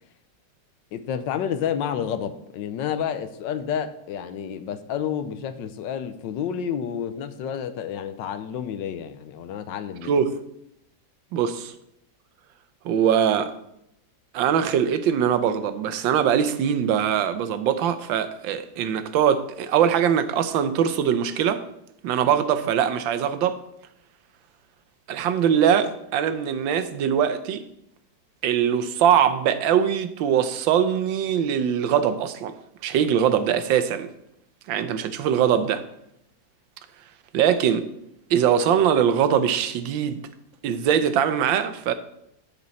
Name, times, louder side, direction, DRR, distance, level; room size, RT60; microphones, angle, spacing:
voice 1, 0.9-10.2, left 8 dB, 80° left, 1.4 m, -30 dB
voice 2, 10.0-10.3 11.3-11.7 12.8-13.5 14.3-21.6 22.0-23.6 25.1-27.6 28.4-32.5 32.8-34.1 34.7-35.8 37.3-37.9 38.3-40.2 40.6-41.9, right 8 dB, 85° right, 1.5 m, -22 dB
13.5 x 5.3 x 4.1 m
omnidirectional pair, 2.0 m